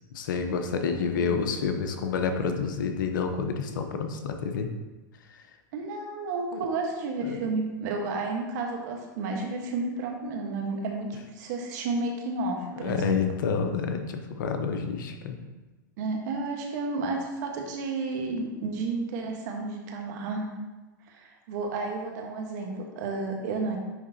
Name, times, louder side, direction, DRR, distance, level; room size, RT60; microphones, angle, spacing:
voice 1, 0.1-4.7 5.3-5.4 6.5-6.6 7.2-7.5 12.8-15.4, left 5 dB, 70° left, 6 dB, 0.8 m, -29 dB
voice 2, 0.9-1.4 5.7-13.2 16.0-20.5 21.1-23.8, right 3 dB, 60° right, 1 dB, 1.3 m, -32 dB
9.6 x 3.7 x 2.8 m, 1.2 s
hypercardioid pair, 115°, 11 cm